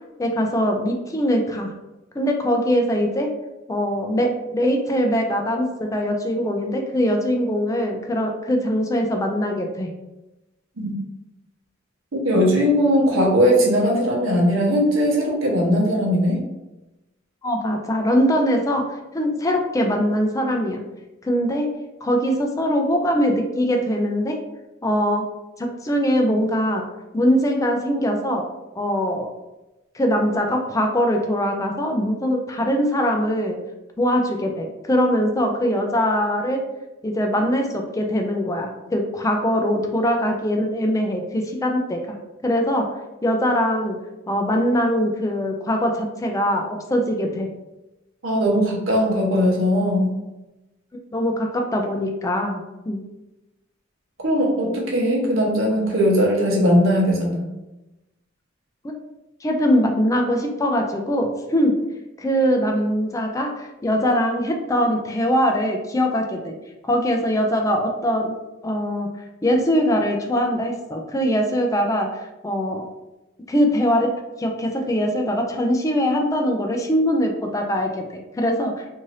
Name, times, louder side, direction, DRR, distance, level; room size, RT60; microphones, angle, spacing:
voice 1, 0.2-1.7 2.2-3.3 3.7-9.9 17.4-18.8 19.1-20.8 21.2-21.7 22.0-24.4 24.8-25.2 25.6-26.8 27.1-28.4 28.7-29.3 29.9-33.6 34.0-36.6 37.0-42.2 42.4-42.9 43.2-44.0 44.3-47.5 51.1-53.0 58.8-58.9 59.4-61.7 62.2-66.5 66.8-68.4 68.6-69.1 69.4-72.1 72.4-72.8 73.5-74.1 74.4-78.0 78.4-78.7, equal, 15° left, 3 dB, 0.4 m, -22 dB
voice 2, 12.2-16.4 48.2-50.1 54.2-57.5, equal, 85° right, -2 dB, 0.8 m, -19 dB
2.7 x 2.5 x 3.2 m, 1.0 s
head